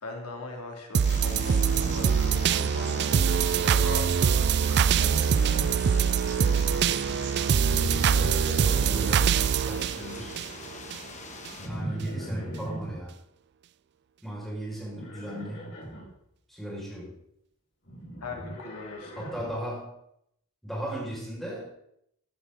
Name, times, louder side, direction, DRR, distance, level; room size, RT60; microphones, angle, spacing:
voice 1, 0.0-4.4 4.7-5.6 18.2-19.4, left 3 dB, 85° left, 2 dB, 2.9 m, -40 dB
sound 1, 0.9-11.0 11.5-11.6, right 7 dB, 50° right, 0.4 m, -24 dB
sound 2, 1.0-11.7, left 2 dB, 35° left, 1.8 m, -40 dB
Livestock farm animals working animals, 1.6-2.9 3.1-3.7 5.0-5.9 7.5-9.3 11.6-13.0 14.9-16.1 17.8-19.6, right 1 dB, 55° left, 6.3 m, -39 dB
voice 2, 8.6-10.3 11.6-13.1 14.2-15.7 16.5-17.2 19.2-20.0 20.6-21.7, right 1 dB, ahead, -5 dB, 6.1 m, -36 dB
15.0 x 11.5 x 4.1 m, 0.74 s
head